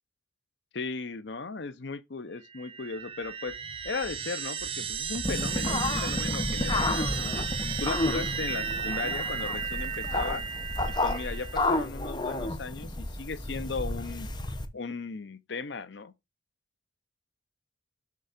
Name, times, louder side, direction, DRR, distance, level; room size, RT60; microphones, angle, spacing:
voice 1, 0.7-3.6 3.8-7.5 7.8-10.4 10.9-14.3 14.7-16.1, left 4 dB, 60° left, 0.7 m, -37 dB
sound 1, 2.5-11.7, right 6 dB, 30° right, 0.6 m, -34 dB
sound 2, 5.2-14.7, left 2 dB, 25° left, 0.8 m, -31 dB
6.7 x 3.7 x 5.1 m
head